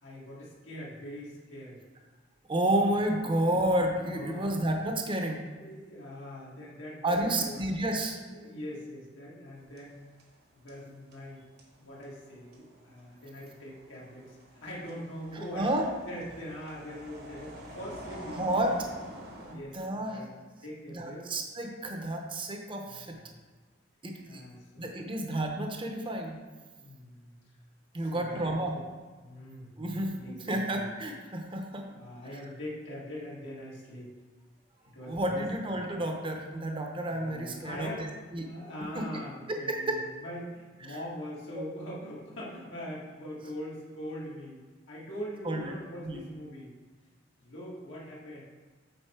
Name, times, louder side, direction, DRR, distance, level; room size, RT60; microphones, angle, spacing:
voice 1, 0.0-1.9 3.4-3.5 4.1-4.6 5.3-7.7 8.3-10.0 10.5-11.4 11.8-18.7 19.5-20.3 20.6-21.3 22.8-23.4 24.3-24.9 26.8-27.4 28.0-28.8 29.2-30.9 31.9-34.1 34.8-35.5 37.0-38.1 38.4-46.7 47.4-48.4, equal, 85° left, -6 dB, 1.9 m, -43 dB
voice 2, 2.5-5.4 7.0-8.2 15.5-15.8 18.4-18.7 19.7-20.2 20.9-23.2 24.0-24.4 24.8-26.4 27.9-28.7 29.8-31.8 35.0-37.9 38.3-38.5 38.9-39.2 39.5-40.0 40.9-41.0 45.4-45.7 46.0-46.3, right 1 dB, 25° right, 2 dB, 0.8 m, -30 dB
sound 1, 9.6-10.4 10.7-19.6, right 1 dB, 55° right, 1.2 m, -47 dB
7.9 x 4.2 x 4.4 m, 1.4 s
head